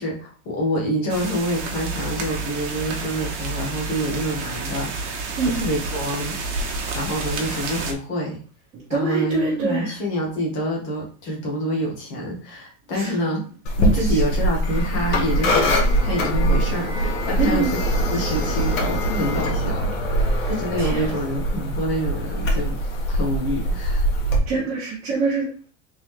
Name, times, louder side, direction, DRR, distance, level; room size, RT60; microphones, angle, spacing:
voice 1, 0.0-8.4 8.9-13.5 13.8-17.8 18.1-22.8 23.1-24.1, equal, 30° left, -1 dB, 1.3 m, -27 dB
sound 1, 1.1-7.9, right 3 dB, 60° right, 1.0 m, -30 dB
voice 2, 8.9-10.0 12.9-13.2 14.1-14.2 17.4-17.7 20.2-20.5 20.8-21.0 24.5-25.5, right 4 dB, 15° right, -8 dB, 1.1 m, -25 dB
sound 2, 13.7-24.4, equal, 85° left, 1.6 m, -22 dB
3.7 x 3.7 x 3.1 m, 0.39 s
supercardioid pair, 180°, 39 cm